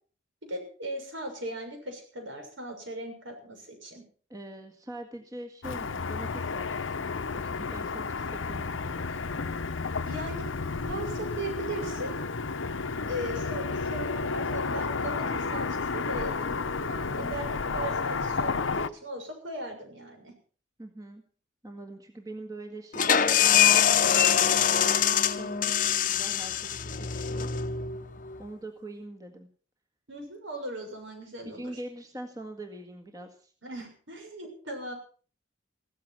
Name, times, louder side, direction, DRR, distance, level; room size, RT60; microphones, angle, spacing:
voice 1, 0.5-4.0 10.0-12.2 13.1-20.3 30.1-31.8 33.6-34.9, right 1 dB, 75° right, 3 dB, 6.8 m, -38 dB
voice 2, 4.3-9.2 13.0-13.2 20.8-21.2 21.6-27.5 28.4-29.5 31.6-33.5, right 1 dB, 20° right, 4 dB, 1.7 m, -43 dB
Car passing by / Traffic noise roadway noise, 5.6-18.9, left 4 dB, 80° left, 0.8 m, -32 dB
sound 1, 22.9-28.4, left 9 dB, 40° left, 0.8 m, -24 dB
16.0 x 14.0 x 6.0 m, 0.43 s
head